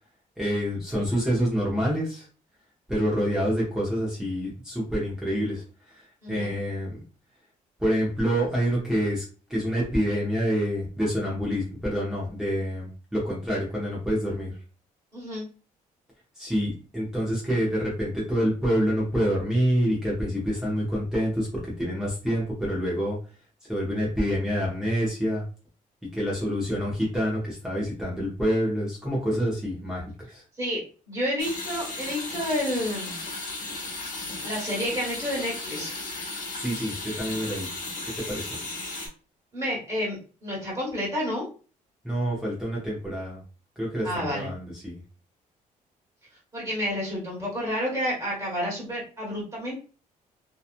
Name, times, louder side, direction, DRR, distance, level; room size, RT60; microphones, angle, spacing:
voice 1, 0.4-2.3 2.9-7.0 7.8-9.2 9.5-14.6 16.3-23.2 23.6-25.4 26.1-30.4 36.6-37.7 38.0-38.5 42.0-43.4 43.8-45.0, equal, 5° right, -6 dB, 0.7 m, -27 dB
voice 2, 6.2-6.5 15.1-15.4 30.6-30.8 31.1-33.1 34.4-35.9 39.5-41.5 44.0-44.5 46.5-49.7, equal, 25° right, -5 dB, 1.4 m, -30 dB
sound 1, 31.4-39.1, left 2 dB, 65° left, 1.0 m, -35 dB
2.8 x 2.3 x 2.4 m, 0.36 s
cardioid pair, 145°, 14 cm